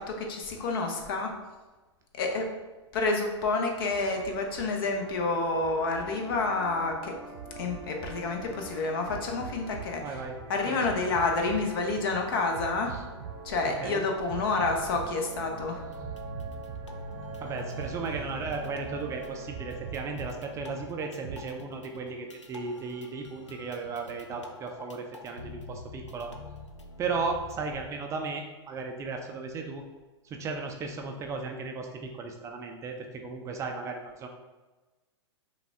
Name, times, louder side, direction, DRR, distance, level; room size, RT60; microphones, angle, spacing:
voice 1, 0.0-1.3 2.1-2.5 2.9-7.2 7.6-10.2 10.5-12.9 13.4-15.8, left 3 dB, 50° left, 2 dB, 0.9 m, -29 dB
sound 1, 3.9-21.4, right 6 dB, 50° right, 0.7 m, -42 dB
voice 2, 10.0-10.3 10.7-10.8 12.9-13.0 13.8-14.0 17.4-26.3 27.0-29.8 30.2-34.3, right 4 dB, 20° right, 3 dB, 0.4 m, -35 dB
sound 2, 15.6-27.8, left 2 dB, 85° left, 0.6 m, -45 dB
5.6 x 2.3 x 3.5 m, 1.2 s
figure-of-eight pair, 105°, 15 cm